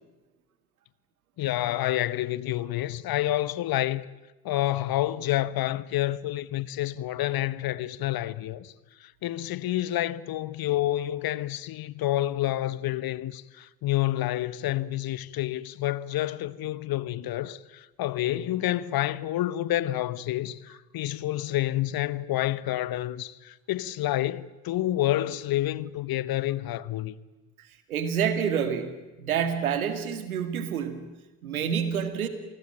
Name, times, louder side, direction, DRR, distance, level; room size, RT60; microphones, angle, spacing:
voice 1, 1.4-4.1 4.4-8.7 9.0-27.1, left 14 dB, 60° left, 1.1 m, -28 dB
voice 2, 27.9-31.1 31.4-32.3, right 7 dB, 90° right, 1.9 m, -28 dB
27.5 x 19.5 x 8.8 m
hypercardioid pair, 50°, 42 cm